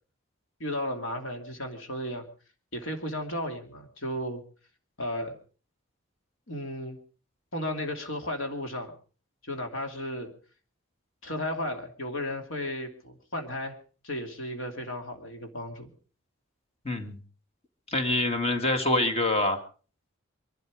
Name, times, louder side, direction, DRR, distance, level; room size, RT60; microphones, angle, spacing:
voice 1, 0.6-2.3 2.7-4.4 5.0-5.3 6.5-7.0 7.5-8.9 9.4-10.3 11.2-13.8 14.0-15.9, left 1 dB, 65° left, 4 dB, 2.7 m, -34 dB
voice 2, 16.8-17.2 17.9-19.6, left 2 dB, 30° left, 6 dB, 2.0 m, -25 dB
23.5 x 12.0 x 4.9 m, 0.39 s
head